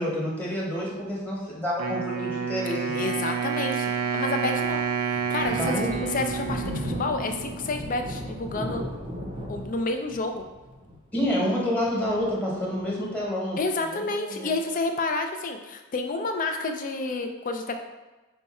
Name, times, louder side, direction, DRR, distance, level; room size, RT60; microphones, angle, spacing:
voice 1, 0.0-3.1 5.6-6.0 11.1-14.5, equal, 5° left, -5 dB, 1.1 m, -28 dB
Wind instrument woodwind instrument, 1.8-7.7, right 7 dB, 90° right, 0.5 m, -29 dB
voice 2, 2.9-8.8 9.5-10.4 13.6-17.8, left 3 dB, 40° left, 5 dB, 0.4 m, -30 dB
Thunder, 4.1-13.2, equal, 25° right, 0.7 m, -37 dB
5.4 x 2.3 x 4.1 m, 1.2 s
head